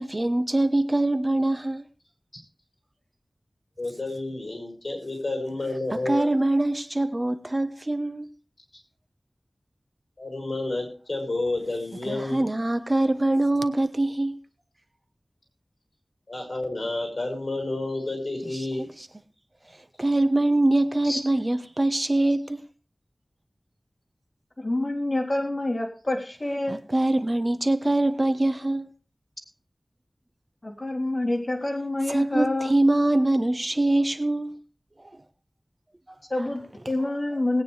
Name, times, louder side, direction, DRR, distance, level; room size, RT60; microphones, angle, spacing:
voice 1, 0.0-1.8 6.1-8.3 12.1-14.4 18.8-19.1 20.0-22.6 26.7-28.9 32.1-34.6 36.1-36.2, right 2 dB, 35° right, 1.0 m, -23 dB
voice 2, 3.8-6.3 10.2-12.5 16.3-18.9, left 2 dB, 60° left, 5.7 m, -30 dB
voice 3, 24.6-26.7 30.6-32.7 36.3-37.6, left 1 dB, 40° left, 3.3 m, -27 dB
20.0 x 9.2 x 3.2 m
wide cardioid pair, 65°, 0 cm